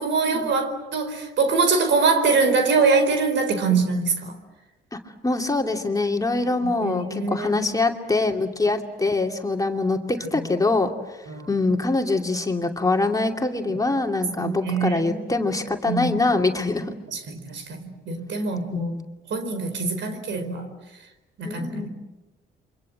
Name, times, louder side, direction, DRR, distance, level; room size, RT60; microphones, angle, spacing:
voice 1, 0.0-4.3 6.6-7.6 11.3-11.5 14.4-15.3 15.9-16.2 17.1-18.9 19.3-20.7 21.4-21.9, right 4 dB, 70° right, 8 dB, 4.7 m, -24 dB
voice 2, 4.9-10.9 11.5-17.0 18.7-19.1 21.4-21.9, left 3 dB, 15° left, 3 dB, 2.6 m, -24 dB
28.0 x 25.0 x 7.8 m, 1.1 s
cardioid pair, 90°, 20 cm